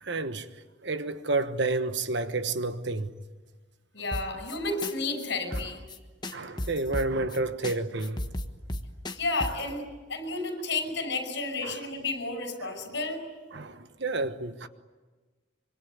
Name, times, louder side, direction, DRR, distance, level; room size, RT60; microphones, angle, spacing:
voice 1, 0.0-0.5 0.8-3.1 5.5-5.6 6.3-8.2 11.6-11.8 12.6-12.7 13.5-14.7, right 3 dB, 60° right, 1.2 m, -30 dB
voice 2, 3.9-5.8 9.1-9.8 10.1-13.2, left 3 dB, 60° left, 5.8 m, -31 dB
sound 1, 4.1-4.6 4.8-4.9 5.2-5.3 5.5-7.4 7.6-7.8 8.0-9.7, left 1 dB, 20° left, 1.3 m, -34 dB
26.0 x 24.0 x 9.6 m
head